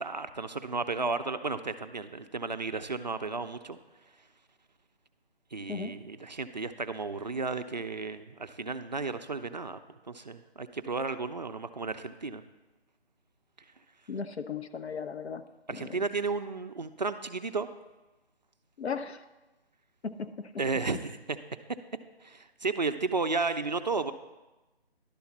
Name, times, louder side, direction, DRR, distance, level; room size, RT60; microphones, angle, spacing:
voice 1, 0.0-3.8 5.5-9.8 10.1-12.4 15.7-17.7 20.6-21.4 22.2-24.1, right 4 dB, 45° right, 9 dB, 0.4 m, -33 dB
voice 2, 14.1-15.4 15.7-16.1 18.8-19.3 20.0-20.6, left 5 dB, 85° left, 9 dB, 0.8 m, -36 dB
11.0 x 3.9 x 7.1 m, 1.1 s
figure-of-eight pair, 165°, 32 cm